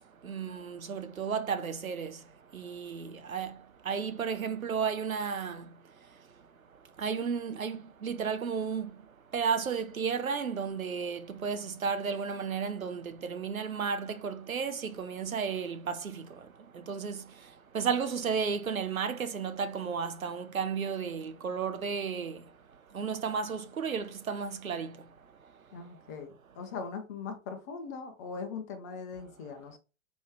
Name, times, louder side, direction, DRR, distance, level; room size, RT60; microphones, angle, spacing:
voice 1, 0.2-2.1 2.5-3.5 3.9-5.6 7.0-8.9 9.3-16.2 16.9-17.2 17.7-22.4 22.9-24.9, right 6 dB, 85° right, 0.7 m, -33 dB
voice 2, 25.7-29.8, left 5 dB, 15° left, 0.4 m, -40 dB
4.4 x 3.1 x 3.3 m
figure-of-eight pair, 115°, 40 cm